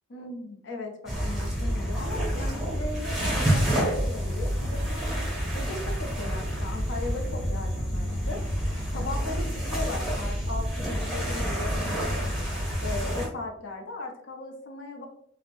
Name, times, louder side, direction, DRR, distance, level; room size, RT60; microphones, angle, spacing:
voice 1, 0.1-5.0 5.5-8.4 8.9-12.4 12.8-15.1, left 2 dB, 70° left, 2 dB, 0.6 m, -37 dB
sound 1, 1.1-13.3, equal, 5° right, 0.7 m, -28 dB
3.0 x 2.0 x 2.5 m, 0.70 s
head